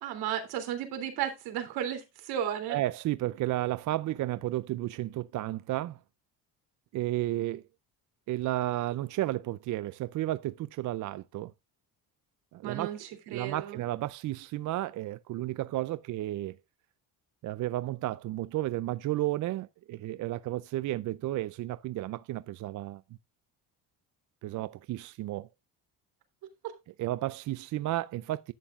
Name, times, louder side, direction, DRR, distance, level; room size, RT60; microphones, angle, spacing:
voice 1, 0.0-2.8 12.6-13.8 26.6-26.7, right 10 dB, 80° right, 3.2 m, -34 dB
voice 2, 2.7-6.0 6.9-7.6 8.3-11.5 12.5-12.9 13.3-16.6 17.4-23.0 24.4-25.5 27.0-28.5, right 15 dB, 50° right, 0.5 m, -32 dB
11.5 x 9.1 x 2.5 m
cardioid pair, 130°, 38 cm